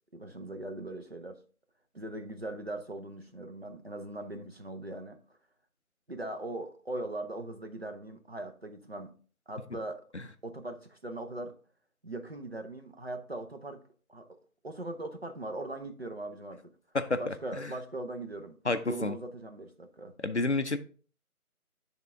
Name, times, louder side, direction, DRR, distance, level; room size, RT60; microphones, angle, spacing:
voice 1, 0.1-1.4 1.9-5.2 6.1-9.1 9.5-10.1 10.4-11.6 12.0-13.8 14.1-14.4 14.6-16.7 17.2-18.6 18.9-20.1, right 2 dB, 45° right, 0.7 m, -40 dB
voice 2, 16.9-17.3 18.7-19.1 20.2-20.8, left 2 dB, 50° left, 0.5 m, -29 dB
10.0 x 3.6 x 3.5 m
figure-of-eight pair, 175°, 44 cm